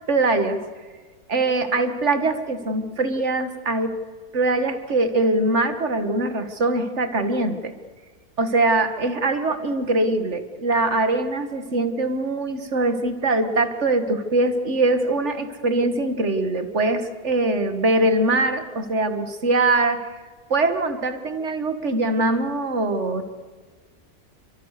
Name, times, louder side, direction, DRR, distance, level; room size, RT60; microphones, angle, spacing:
voice 1, 0.1-0.6 1.3-4.0 4.3-7.7 8.4-20.1 20.5-23.2, right 2 dB, 45° right, 8 dB, 2.1 m, -22 dB
28.5 x 25.0 x 6.7 m, 1.5 s
omnidirectional pair, 1.7 m